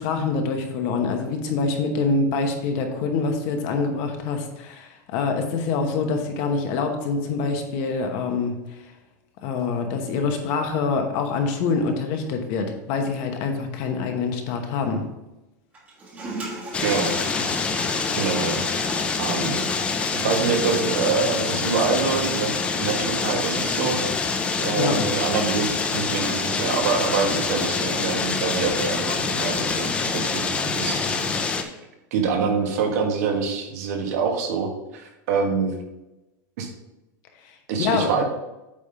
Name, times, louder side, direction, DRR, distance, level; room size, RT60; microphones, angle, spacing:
voice 1, 0.0-8.5 9.4-15.0 24.8-24.9 37.8-38.1, left 4 dB, 40° left, 4 dB, 1.0 m, -25 dB
Toilet flush, 15.7-22.7, right 2 dB, 15° right, 1.4 m, -39 dB
sound 1, 16.7-31.6, left 4 dB, 10° left, 0.4 m, -26 dB
voice 2, 16.8-17.1 18.1-18.6 19.2-19.6 20.1-24.0 24.6-31.7 32.1-35.8 36.6-36.7 37.7-38.2, right 5 dB, 60° right, 3 dB, 1.4 m, -25 dB
8.4 x 3.6 x 5.6 m, 1.0 s
supercardioid pair, 170°, 10 cm